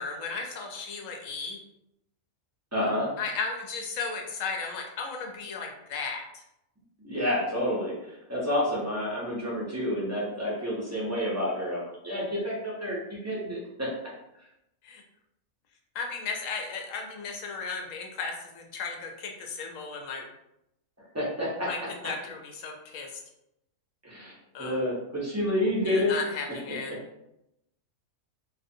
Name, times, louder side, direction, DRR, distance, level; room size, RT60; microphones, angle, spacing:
voice 1, 0.0-1.6 3.2-6.4 14.8-15.0 15.9-20.3 21.6-23.1 24.5-24.8 25.9-27.0, left 4 dB, 80° left, 2 dB, 0.9 m, -35 dB
voice 2, 2.7-3.1 7.0-14.1 21.1-21.7 24.0-26.2 26.9-27.0, left 1 dB, 20° right, -6 dB, 0.5 m, -29 dB
2.5 x 2.4 x 2.6 m, 0.85 s
omnidirectional pair, 1.3 m